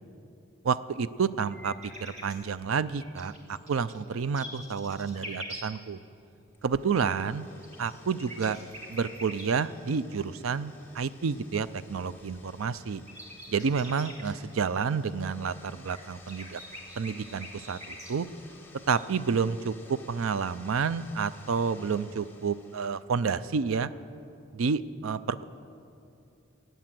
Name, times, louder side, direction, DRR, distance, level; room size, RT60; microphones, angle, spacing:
voice 1, 0.6-1.7 2.0-6.0 6.6-7.5 7.8-8.6 8.9-13.0 13.5-16.6 17.0-18.3 18.9-23.9 24.5-25.4, right 5 dB, 85° right, 16 dB, 0.5 m, -30 dB
sound 1, 1.5-5.7 7.3-9.5 12.5-12.6 12.9-14.3 15.8-18.5 18.9-19.5, equal, 35° right, 2.3 m, -44 dB
sound 2, 6.5-23.0, left 3 dB, 10° left, 1.4 m, -55 dB
16.5 x 9.2 x 7.6 m, 2.7 s
head